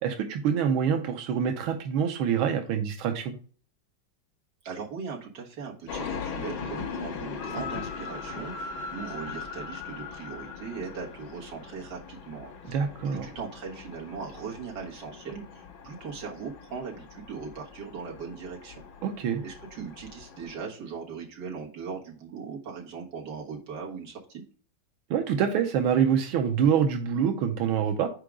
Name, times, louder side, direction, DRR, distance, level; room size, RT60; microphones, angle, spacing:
voice 1, 0.0-3.3 12.7-13.3 19.0-19.4 25.1-28.1, right 7 dB, 90° right, 5 dB, 1.5 m, -26 dB
voice 2, 4.6-12.8 13.0-18.8 19.4-24.4, right 5 dB, 60° right, -2 dB, 2.0 m, -39 dB
sound 1, 5.9-20.6, left 5 dB, 85° left, 1.8 m, -40 dB
5.0 x 4.6 x 4.8 m, 0.42 s
omnidirectional pair, 2.2 m